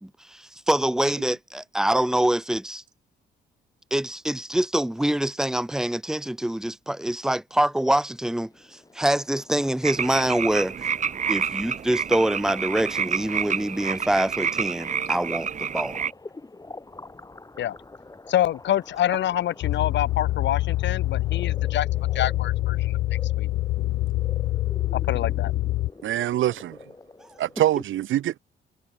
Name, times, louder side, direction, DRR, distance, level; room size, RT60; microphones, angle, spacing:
voice 1, 0.0-2.8 3.9-10.8 11.3-16.0, right 1 dB, 5° right, 1.0 m, -25 dB
sound 1, 8.2-27.7, left 2 dB, 20° left, 6.1 m, -47 dB
sound 2, 9.8-16.1, right 7 dB, 40° right, 1.0 m, -28 dB
voice 2, 18.3-21.9 22.1-22.9 23.4-23.5 24.9-25.5, left 12 dB, 65° left, 0.9 m, -26 dB
sound 3, 19.6-25.9, left 17 dB, 80° left, 0.5 m, -25 dB
voice 3, 26.0-26.8 27.4-28.4, right 13 dB, 75° right, 2.3 m, -24 dB
cardioid pair, 90°, 20 cm